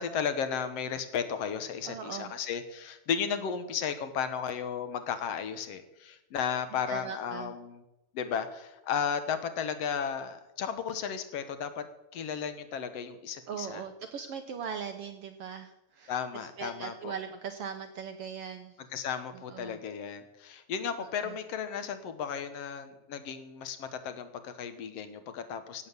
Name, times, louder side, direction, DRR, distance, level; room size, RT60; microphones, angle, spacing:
voice 1, 0.0-7.8 8.1-11.9 12.1-13.8 16.1-17.1 18.9-25.9, left 7 dB, 60° left, 10 dB, 1.9 m, -34 dB
voice 2, 1.8-2.3 6.9-7.6 13.5-18.8 19.3-19.8 21.0-21.4, right 7 dB, 70° right, 7 dB, 1.5 m, -40 dB
17.0 x 8.0 x 6.8 m, 0.95 s
omnidirectional pair, 3.5 m